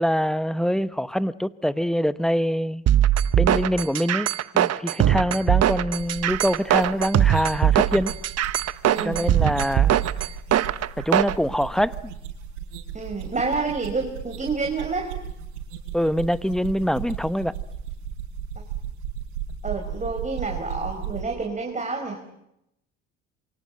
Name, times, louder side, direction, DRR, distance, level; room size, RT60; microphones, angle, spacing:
voice 1, 0.0-2.8 3.3-4.3 4.5-8.1 9.0-10.0 11.0-12.0 15.9-17.5, equal, ahead, 1.1 m, -24 dB
sound 1, 2.9-11.3, right 11 dB, 45° right, 1.0 m, -21 dB
sound 2, 5.9-21.2, right 8 dB, 80° right, 5.2 m, -35 dB
voice 2, 8.9-9.3 12.9-15.1 19.6-22.2, right 4 dB, 20° right, 4.9 m, -28 dB
27.5 x 24.5 x 7.8 m
hypercardioid pair, 70°, 34 cm